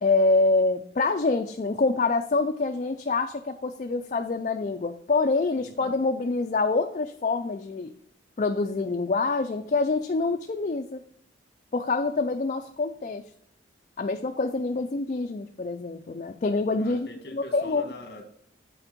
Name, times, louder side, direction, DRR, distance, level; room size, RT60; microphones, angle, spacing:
voice 1, 0.0-7.9 8.4-11.0 11.7-13.2 14.0-17.8, left 3 dB, 40° left, 5 dB, 0.4 m, -26 dB
voice 2, 5.6-6.0 14.7-14.8 16.8-18.2, left 1 dB, 55° left, 5 dB, 1.5 m, -44 dB
8.5 x 4.5 x 5.1 m, 0.66 s
head